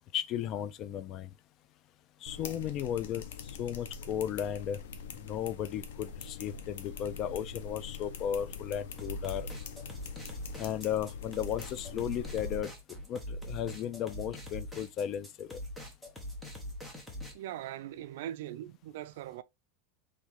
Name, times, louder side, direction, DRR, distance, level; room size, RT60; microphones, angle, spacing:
voice 1, 0.1-1.3 2.2-4.8 5.2-9.5 10.6-12.7 13.1-15.6, left 10 dB, 35° left, 0.4 m, -35 dB
sound 1, 2.3-12.6, left 5 dB, 80° left, 0.7 m, -44 dB
sound 2, 9.0-17.3, equal, 5° left, 0.9 m, -42 dB
voice 2, 17.3-19.4, right 12 dB, 65° right, 0.4 m, -41 dB
3.6 x 3.2 x 3.1 m
supercardioid pair, 160°, 0 cm